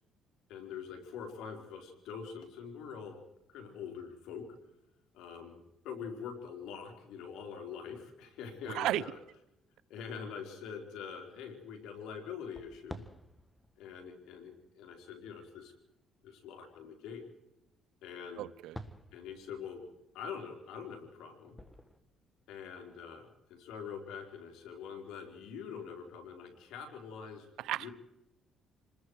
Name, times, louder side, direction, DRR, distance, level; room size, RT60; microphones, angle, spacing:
voice 1, 0.5-3.2 3.5-4.5 5.1-9.2 9.9-13.0 13.8-15.7 16.2-17.2 18.0-18.5 19.1-19.8 20.1-21.6 22.5-27.4 27.8-27.9, left 6 dB, 85° left, 4.3 m, -44 dB
sound 1, 6.9-8.0 8.7-8.9 9.6-9.7 12.4-16.2 18.5-22.0, equal, 10° left, 1.7 m, -52 dB
voice 2, 18.4-18.8 27.6-27.9, right 14 dB, 80° right, 0.7 m, -33 dB
28.0 x 20.5 x 4.8 m
cardioid pair, 95°, 0 cm